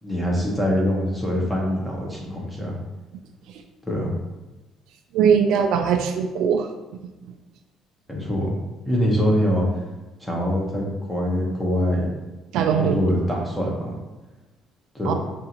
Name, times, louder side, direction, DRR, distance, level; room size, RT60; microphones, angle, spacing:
voice 1, 0.0-2.7 3.9-4.1 8.1-8.6 8.8-9.7 10.2-12.1 12.8-14.0 14.9-15.3, equal, 5° left, -3 dB, 1.0 m, -24 dB
voice 2, 5.1-6.7 12.5-12.9 15.1-15.2, right 7 dB, 75° right, 5 dB, 0.4 m, -20 dB
5.6 x 2.6 x 2.9 m, 1.1 s
cardioid pair, 155°, 0 cm